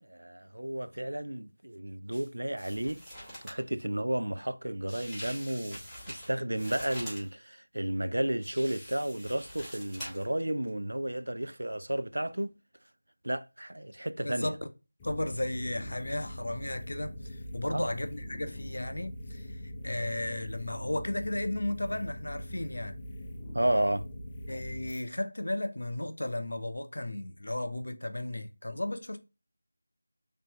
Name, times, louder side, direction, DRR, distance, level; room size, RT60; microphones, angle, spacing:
voice 1, 0.0-3.0 3.4-12.5 13.2-14.5 17.6-17.9 23.5-24.0, right 1 dB, 80° right, 0.3 m, -32 dB
sound 1, 2.1-2.3 2.6-3.6 4.9-7.3 8.4-10.3 10.7-10.8, equal, ahead, 1.3 m, -44 dB
voice 2, 14.2-14.6 15.0-19.5 19.8-22.9 24.5-29.2, left 1 dB, 70° left, 0.5 m, -34 dB
sound 2, 15.0-25.0, equal, 15° left, 0.4 m, -42 dB
3.3 x 2.9 x 2.9 m
figure-of-eight pair, 170°, 0 cm